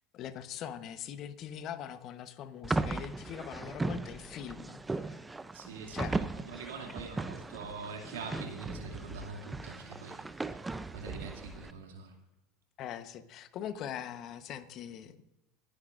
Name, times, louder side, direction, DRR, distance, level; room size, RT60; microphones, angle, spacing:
voice 1, 0.1-5.2 5.9-6.2 12.8-15.2, left 9 dB, 50° left, 11 dB, 1.1 m, -42 dB
sound 1, 2.6-11.7, right 3 dB, 15° right, 0.6 m, -37 dB
voice 2, 5.5-12.1, right 4 dB, 90° right, 2 dB, 2.5 m, -44 dB
26.5 x 10.0 x 2.6 m, 0.98 s
hypercardioid pair, 100°, 0 cm